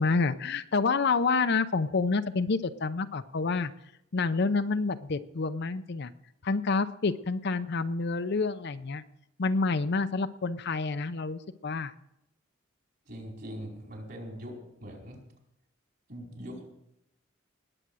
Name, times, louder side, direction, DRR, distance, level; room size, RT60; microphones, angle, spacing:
voice 1, 0.0-3.7 4.1-6.1 6.4-9.0 9.4-11.9, left 4 dB, 55° left, 11 dB, 0.6 m, -28 dB
voice 2, 13.0-15.3 16.1-16.7, equal, 50° right, 0 dB, 4.9 m, -42 dB
19.5 x 7.9 x 6.3 m, 0.81 s
head